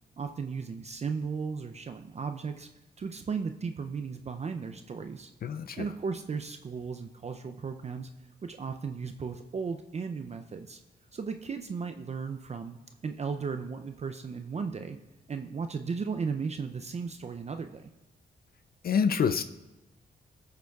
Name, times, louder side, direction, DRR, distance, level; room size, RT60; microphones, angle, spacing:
voice 1, 0.2-2.7 3.0-5.3 5.8-8.1 8.4-10.8 11.1-15.0 15.3-17.9, right 5 dB, 35° right, 6 dB, 0.4 m, -35 dB
voice 2, 5.4-5.8 18.8-19.4, left 6 dB, 55° left, 11 dB, 0.4 m, -26 dB
12.5 x 6.7 x 2.3 m, 1.0 s
cardioid pair, 65°, 18 cm